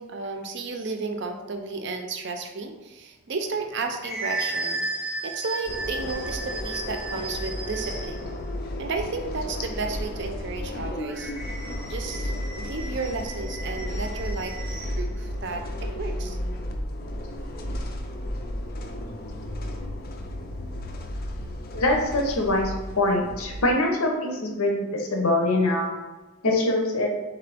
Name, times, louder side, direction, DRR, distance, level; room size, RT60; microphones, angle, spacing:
voice 1, 0.0-4.9 5.2-8.4 8.8-11.3 11.9-16.4, right 4 dB, 55° right, 5 dB, 0.5 m, -33 dB
sound 1, 3.5-8.3 11.0-15.0, right 2 dB, 5° right, 0.8 m, -35 dB
sound 2, 5.7-23.7, left 1 dB, 45° left, 0.4 m, -33 dB
voice 2, 21.7-25.9 26.4-27.1, left 2 dB, 85° left, 1 dB, 0.8 m, -23 dB
3.8 x 3.7 x 3.4 m, 1.2 s
head